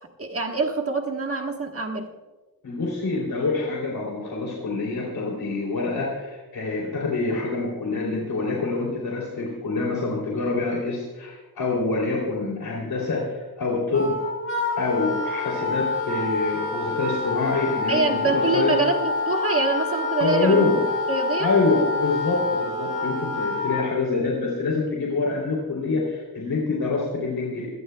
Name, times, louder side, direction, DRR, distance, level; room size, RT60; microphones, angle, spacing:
voice 1, 0.2-2.1 17.9-20.7 21.1-21.5, right 3 dB, 40° right, 3 dB, 1.3 m, -25 dB
voice 2, 2.6-14.1 14.8-18.8 20.2-20.8 21.4-27.7, left 3 dB, 75° left, -3 dB, 3.2 m, -26 dB
Wind instrument woodwind instrument, 13.9-23.9, left 3 dB, 35° left, 6.2 m, -27 dB
25.5 x 17.0 x 2.3 m, 1.3 s
wide cardioid pair, 160°, 36 cm